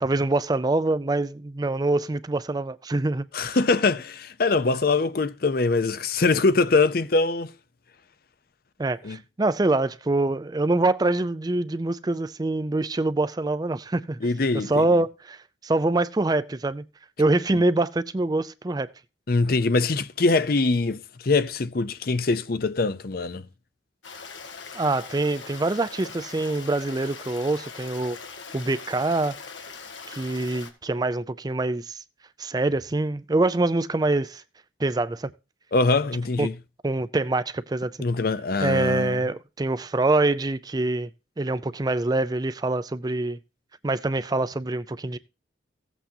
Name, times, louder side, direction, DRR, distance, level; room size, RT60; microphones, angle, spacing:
voice 1, 0.0-3.3 8.8-14.2 14.7-16.8 17.2-18.9 24.7-28.2 28.5-29.4 30.1-32.0 32.4-34.4 34.8-35.3 36.4-36.5 36.8-38.0 38.6-41.1 41.4-43.4 43.8-45.2, right 2 dB, 20° right, 0.4 m, -25 dB
voice 2, 3.3-7.5 9.0-9.2 14.2-14.9 17.5-17.6 19.3-23.5 35.7-36.5 38.0-39.2, left 3 dB, 50° left, 0.6 m, -23 dB
Stream, 24.0-30.7, left 5 dB, 85° left, 1.8 m, -41 dB
16.0 x 8.1 x 2.8 m
head